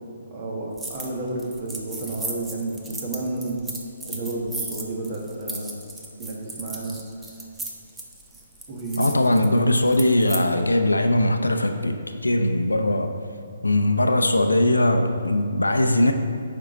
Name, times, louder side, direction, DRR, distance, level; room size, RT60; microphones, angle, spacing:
voice 1, 0.3-3.6 4.1-5.8 6.2-7.0 8.7-9.2, right 2 dB, 35° right, -2 dB, 1.6 m, -31 dB
sound 1, 0.8-1.1 1.4-10.4, right 2 dB, 5° right, 0.7 m, -36 dB
voice 2, 9.0-13.1 13.6-16.1, left 1 dB, 85° left, 6 dB, 0.6 m, -20 dB
9.0 x 5.4 x 3.9 m, 2.4 s
figure-of-eight pair, 135°, 0 cm